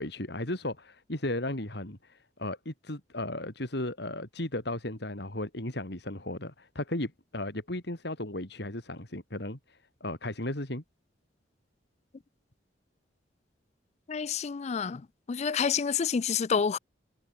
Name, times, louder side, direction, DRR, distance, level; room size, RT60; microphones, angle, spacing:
voice 1, 0.0-10.8, left 1 dB, 65° left, 3.5 m, -35 dB
voice 2, 14.1-15.0 15.3-16.8, left 6 dB, 35° left, 0.4 m, -28 dB
head